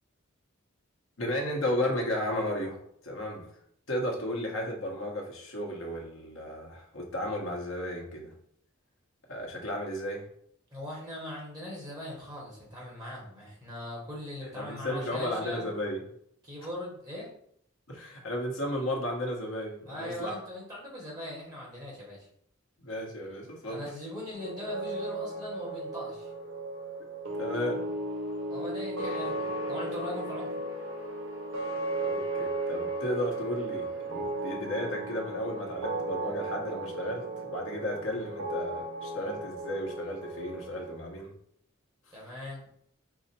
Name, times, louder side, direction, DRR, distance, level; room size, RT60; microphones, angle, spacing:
voice 1, 1.2-3.5 3.9-8.3 9.3-10.2 14.5-16.0 17.9-20.4 22.8-23.9 27.3-27.9 32.0-41.3 42.1-42.2, left 1 dB, 70° left, 0 dB, 1.1 m, -34 dB
voice 2, 10.7-15.6 16.4-17.3 19.9-22.3 23.7-26.3 28.5-30.5 42.1-42.6, left 1 dB, 20° right, -5 dB, 1.3 m, -40 dB
sound 1, 24.3-41.0, right 2 dB, 80° right, 0.9 m, -35 dB
4.7 x 2.1 x 4.2 m, 0.68 s
head